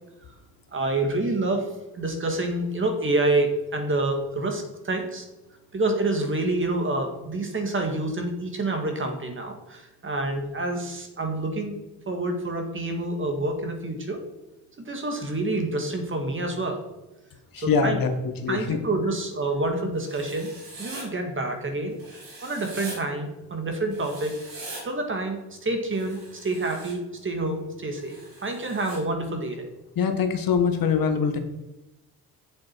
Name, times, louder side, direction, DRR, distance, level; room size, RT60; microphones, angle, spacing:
voice 1, 0.7-5.3 5.7-11.8 12.1-14.2 14.8-16.8 17.6-18.0 18.5-20.5 20.8-22.0 22.4-24.3 24.8-29.7, right 2 dB, 30° right, 4 dB, 1.8 m, -28 dB
voice 2, 17.5-18.1 18.4-18.8 30.0-31.4, left 6 dB, 65° left, 7 dB, 1.3 m, -23 dB
Writing, 20.0-21.0 22.0-23.0 23.9-24.8 25.9-26.9 28.0-29.0, right 2 dB, 65° right, 2.9 m, -42 dB
7.7 x 7.3 x 4.6 m, 1.0 s
cardioid pair, 95°, 37 cm